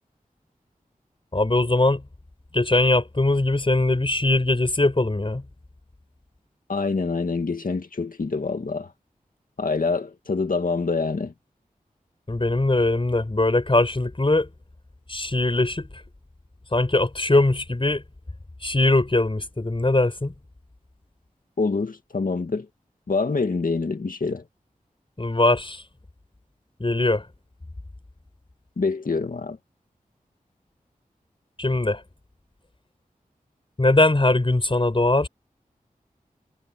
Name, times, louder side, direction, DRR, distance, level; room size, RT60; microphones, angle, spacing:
voice 1, 1.3-2.0 2.5-5.4 12.3-14.5 15.1-16.0 16.7-18.0 18.6-20.3 25.2-25.8 26.8-27.3 31.6-32.0 33.8-35.3, left 2 dB, 35° left, 5.9 m, -21 dB
voice 2, 6.7-8.9 9.6-11.3 21.6-22.7 23.1-24.4 28.8-29.6, left 4 dB, 70° left, 2.2 m, -26 dB
wide cardioid pair, 50°, 15 cm